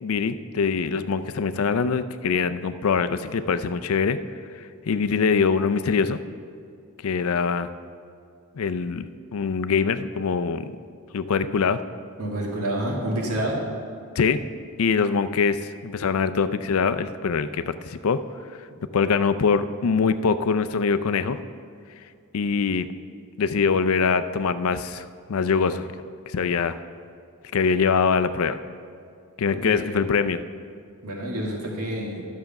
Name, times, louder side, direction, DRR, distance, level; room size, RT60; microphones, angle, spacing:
voice 1, 0.0-4.2 4.6-6.2 7.0-7.7 8.5-9.1 9.3-10.7 11.1-11.8 14.2-14.4 14.8-18.2 18.9-21.4 22.3-22.9 23.4-25.9 26.3-26.8 27.5-28.6 29.4-30.4, left 5 dB, 70° left, 12 dB, 0.4 m, -23 dB
voice 2, 12.2-13.6 29.5-29.9 31.0-32.3, right 1 dB, 85° right, -2 dB, 2.1 m, -28 dB
11.5 x 6.5 x 5.8 m, 2.3 s
head